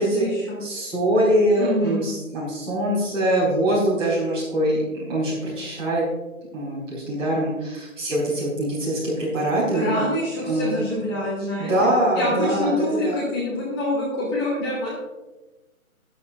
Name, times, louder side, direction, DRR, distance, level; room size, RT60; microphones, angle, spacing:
voice 1, 0.0-0.6 1.6-2.1 9.7-11.7 12.1-14.9, left 1 dB, 20° left, -6 dB, 2.8 m, -26 dB
voice 2, 0.6-6.0 6.5-10.0 10.4-10.7 11.6-13.2, right 1 dB, 15° right, -7 dB, 3.8 m, -23 dB
13.0 x 11.5 x 2.6 m, 1.1 s
figure-of-eight pair, 155°, 42 cm